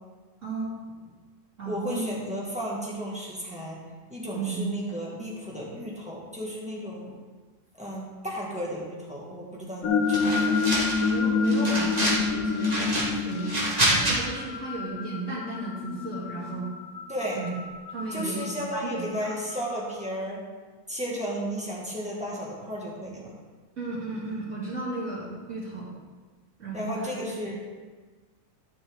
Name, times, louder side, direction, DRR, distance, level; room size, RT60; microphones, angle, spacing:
voice 1, 0.4-0.7 1.6-2.0 4.3-4.7 11.0-13.5 13.9-16.7 17.4-17.5 17.9-19.3 23.8-25.9 26.6-27.1 27.4-27.5, right 3 dB, 60° right, -10 dB, 2.9 m, -34 dB
voice 2, 1.7-3.8 4.1-7.2 7.8-10.6 17.1-17.4 18.1-20.4 20.9-23.4 26.7-27.5, equal, 5° right, -6 dB, 2.1 m, -34 dB
sound 1, 9.8-19.9, left 4 dB, 85° left, 1.1 m, -29 dB
sound 2, 10.1-11.1 11.5-12.2 12.6-14.2, right 1 dB, 30° right, 2.1 m, -27 dB
13.0 x 6.2 x 3.9 m, 1.4 s
omnidirectional pair, 1.4 m